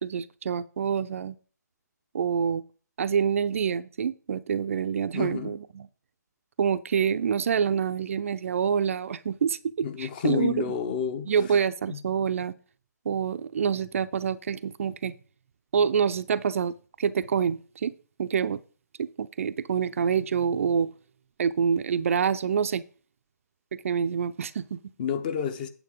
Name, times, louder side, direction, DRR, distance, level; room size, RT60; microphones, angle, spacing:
voice 1, 0.0-1.4 2.1-2.6 3.0-5.9 6.6-10.6 11.3-12.5 13.1-15.1 15.7-17.9 18.2-18.6 19.0-20.9 21.4-22.8 23.7-24.8, right 7 dB, 45° right, 0.4 m, -26 dB
voice 2, 5.1-5.5 9.8-11.3 11.9-12.0 25.0-25.7, left 8 dB, 30° left, 0.8 m, -29 dB
9.0 x 7.4 x 3.7 m
figure-of-eight pair, 145°, 10 cm